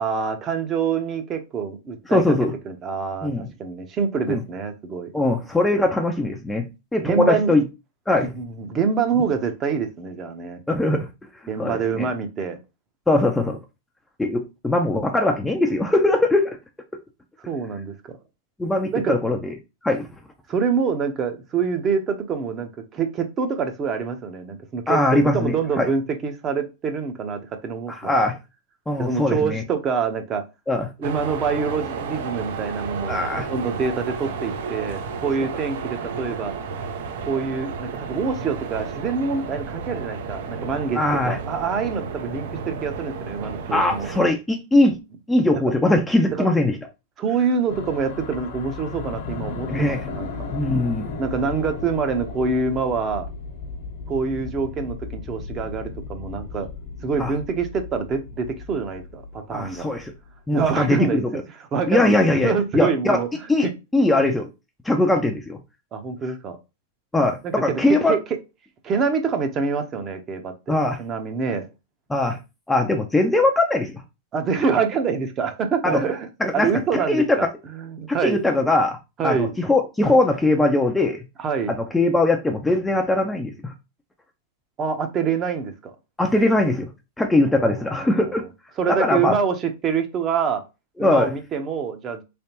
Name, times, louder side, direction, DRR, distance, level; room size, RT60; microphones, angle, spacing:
voice 1, 0.0-2.4 2.7-5.1 7.0-7.5 8.2-10.6 11.5-12.6 17.5-18.1 18.9-19.2 20.5-28.1 29.0-30.4 31.0-33.2 33.5-36.5 37.2-44.1 46.4-46.5 47.2-50.3 51.2-53.3 54.1-56.7 57.0-59.9 60.5-61.4 61.7-63.3 63.6-63.7 65.9-66.6 67.4-68.2 68.8-71.6 74.3-76.3 76.5-77.5 77.7-78.4 79.2-79.5 81.4-81.7 84.8-85.9 87.5-88.2 88.8-90.6 91.0-92.2, right 5 dB, 25° right, 0.8 m, -26 dB
voice 2, 2.1-2.5 3.2-3.5 4.3-4.4 5.1-7.6 8.1-8.3 10.7-11.1 11.6-12.1 13.1-13.6 14.2-16.6 18.6-19.5 19.8-20.1 24.9-25.9 27.9-28.4 28.9-29.6 30.7-30.9 33.1-33.5 41.0-41.4 43.7-45.0 45.3-46.8 49.7-50.1 50.5-51.2 57.2-57.3 59.5-60.1 60.5-61.4 61.9-63.2 63.5-64.5 64.8-65.6 67.1-68.2 70.7-71.0 72.1-72.4 72.7-74.0 75.8-76.0 76.4-77.4 78.1-79.0 79.2-81.2 81.7-83.7 86.2-86.9 87.2-88.5 88.9-89.4 91.0-91.3, left 2 dB, 5° left, 0.5 m, -21 dB
sound 1, 31.0-44.3, right 5 dB, 65° right, 0.7 m, -32 dB
sound 2, 47.7-60.3, left 4 dB, 55° left, 1.0 m, -35 dB
3.4 x 3.3 x 2.9 m
hypercardioid pair, 130°, 0 cm